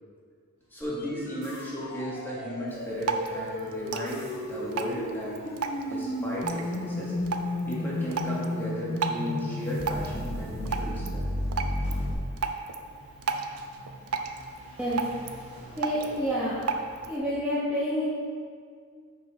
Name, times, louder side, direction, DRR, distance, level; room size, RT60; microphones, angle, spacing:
sound 1, 0.6-8.7 8.9-17.1, right 1 dB, 35° right, 1.5 m, -54 dB
voice 1, 0.7-5.4 5.9-7.1 7.7-11.2, equal, 10° left, -7 dB, 1.4 m, -35 dB
sound 2, 0.8-12.1, left 1 dB, 45° left, 0.7 m, -33 dB
Drip, 2.7-17.2, right 4 dB, 75° right, 0.5 m, -36 dB
voice 2, 15.8-16.6 17.1-18.1, equal, 5° right, -11 dB, 0.9 m, -28 dB
5.5 x 5.4 x 4.2 m, 2.1 s
head